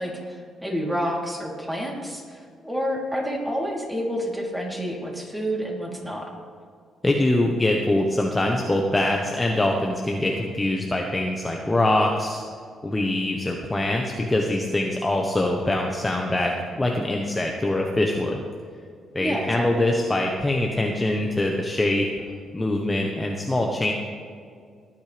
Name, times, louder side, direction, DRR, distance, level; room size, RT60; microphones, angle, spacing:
voice 1, 0.0-6.3 19.2-19.9, equal, 5° right, -3 dB, 3.3 m, -29 dB
voice 2, 7.0-12.4 12.8-18.4 19.1-22.1 22.5-23.9, left 1 dB, 15° left, 0 dB, 1.1 m, -23 dB
19.5 x 8.9 x 3.4 m, 2.2 s
cardioid pair, 90°, 0 cm